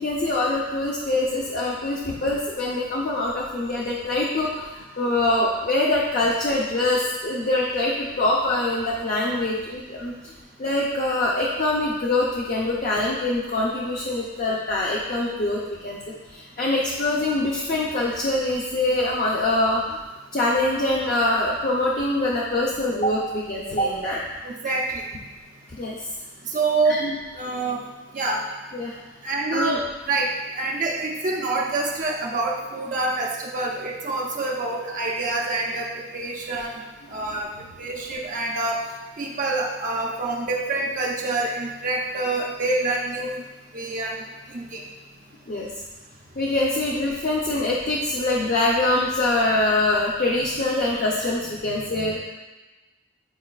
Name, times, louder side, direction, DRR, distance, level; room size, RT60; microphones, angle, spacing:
voice 1, 0.0-10.3 10.6-16.0 16.3-20.0 20.3-24.2 25.8-26.0 26.8-27.2 28.7-29.0 29.5-29.8 37.1-37.3 45.5-45.7 46.4-52.2, left 2 dB, 45° left, -4 dB, 0.7 m, -24 dB
voice 2, 24.4-25.0 26.5-27.0 27.3-27.9 28.1-28.4 29.2-29.8 30.1-36.8 37.1-37.5 37.8-38.8 39.2-43.4 43.7-44.8, right 3 dB, 45° right, -2 dB, 0.6 m, -26 dB
9.6 x 4.2 x 2.4 m, 1.2 s
head